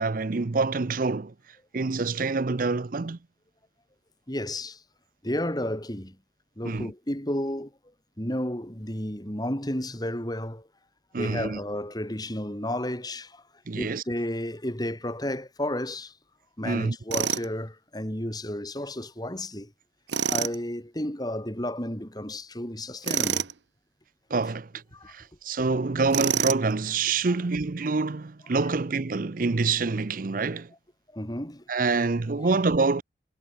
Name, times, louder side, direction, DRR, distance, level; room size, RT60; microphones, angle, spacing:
voice 1, 0.0-1.3 1.7-3.2 6.6-6.9 11.1-11.6 13.7-14.0 16.6-17.0 24.3-24.7 25.1-30.7 31.7-33.0, right 4 dB, 50° right, 0.6 m, -26 dB
voice 2, 4.3-4.8 5.2-6.2 6.6-7.7 8.2-10.7 11.2-13.4 13.7-16.1 16.6-19.7 20.3-23.5 24.9-25.1 28.5-28.6 31.1-31.6 32.0-32.1 32.4-32.5, left 1 dB, 20° left, 4.0 m, -32 dB
Tools, 17.1-17.5 20.1-20.6 23.0-23.5 26.1-26.7, right 8 dB, 80° right, 1.1 m, -26 dB
head